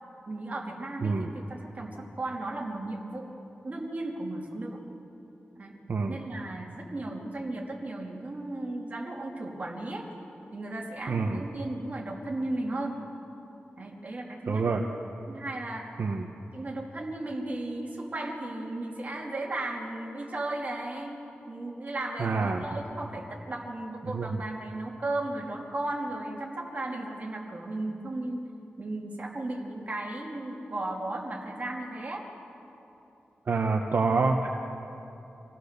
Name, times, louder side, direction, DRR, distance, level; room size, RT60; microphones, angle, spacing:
voice 1, 0.3-3.3 3.6-4.8 5.6-5.7 6.1-10.1 10.5-13.0 13.8-14.7 15.3-16.0 16.5-21.2 21.5-28.5 28.8-32.3, right 2 dB, 40° right, -1 dB, 3.0 m, -35 dB
voice 2, 11.1-11.4 14.5-14.8 16.0-16.3 22.2-22.6 24.0-24.4 33.5-34.5, right 4 dB, 65° right, 2 dB, 1.1 m, -27 dB
26.0 x 16.0 x 6.7 m, 2.9 s
wide cardioid pair, 130°, 4 cm